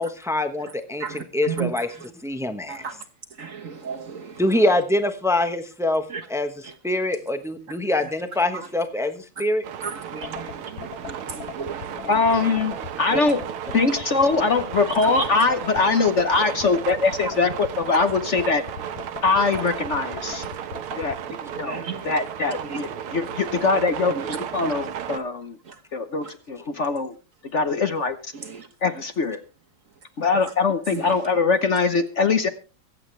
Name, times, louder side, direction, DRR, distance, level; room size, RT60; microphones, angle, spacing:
voice 1, 0.0-1.9 2.2-2.8 4.4-6.0 6.3-6.5 6.8-9.6, left 1 dB, 5° right, 8 dB, 0.3 m, -24 dB
voice 2, 1.0-2.1 2.7-3.0 3.4-4.6 6.1-6.2 6.6-6.7 7.7-7.8 8.5-8.7 9.8-12.3 13.1-13.3 14.9-15.3 20.2-20.5 21.6-22.2 22.6-22.8 24.1-24.7 25.6-25.7 26.2-26.3 28.3-28.7 30.9-31.2, right 6 dB, 45° right, 6 dB, 1.4 m, -34 dB
sound 1, 9.6-25.2, right 9 dB, 90° right, 1.9 m, -34 dB
sound 2, 10.2-21.2, left 11 dB, 65° left, 1.5 m, -38 dB
voice 3, 12.1-13.4 13.7-18.6 19.2-20.4 21.0-21.2 21.5-25.6 25.9-27.1 27.5-28.3 28.8-29.4 30.2-32.5, left 4 dB, 50° left, 9 dB, 0.9 m, -22 dB
24.0 x 8.6 x 3.3 m, 0.33 s
omnidirectional pair, 2.4 m